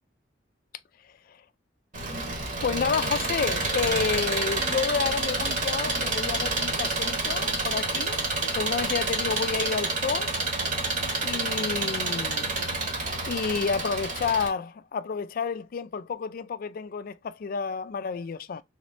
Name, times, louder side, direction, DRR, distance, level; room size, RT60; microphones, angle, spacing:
Engine, 1.9-14.5, right 3 dB, 45° right, 1.2 m, -28 dB
voice 1, 2.6-10.3 11.2-12.6 13.3-18.6, left 5 dB, 50° left, 0.4 m, -30 dB
3.6 x 3.2 x 2.5 m
head